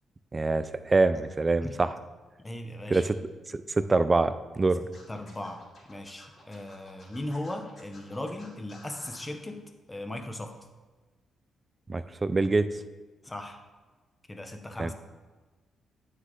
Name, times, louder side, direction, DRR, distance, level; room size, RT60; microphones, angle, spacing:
voice 1, 0.3-1.9 2.9-3.1 3.5-4.8 11.9-12.7 14.8-14.9, right 3 dB, 20° right, 13 dB, 0.3 m, -25 dB
voice 2, 2.4-3.0 5.1-5.6 5.9-9.6 9.9-10.5 13.2-13.6 14.3-14.9, left 1 dB, 10° left, 6 dB, 0.7 m, -37 dB
Scratching (performance technique), 4.9-9.3, left 2 dB, 40° left, 2.6 m, -53 dB
9.6 x 6.5 x 3.8 m, 1.3 s
cardioid pair, 145°, 0 cm